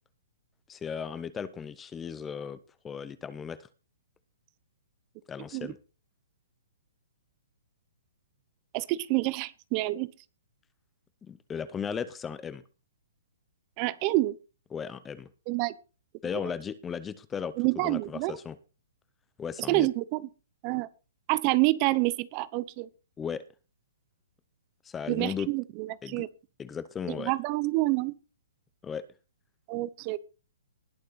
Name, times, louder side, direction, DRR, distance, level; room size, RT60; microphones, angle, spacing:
voice 1, 0.7-2.6 2.8-3.6 5.3-5.8 11.2-12.6 14.7-15.3 16.2-17.5 17.8-18.6 19.4-19.9 23.2-23.4 24.8-25.5 26.0-26.2 26.6-27.3 28.8-29.0, left 7 dB, 10° left, 0.7 m, -36 dB
voice 2, 8.7-10.1 13.8-14.4 15.5-15.7 17.6-18.3 19.7-20.2 20.6-20.9 21.3-22.9 25.1-26.3 27.1-28.1 29.7-30.2, right 20 dB, 30° right, 0.7 m, -27 dB
19.5 x 6.5 x 4.2 m
hypercardioid pair, 160°, 0 cm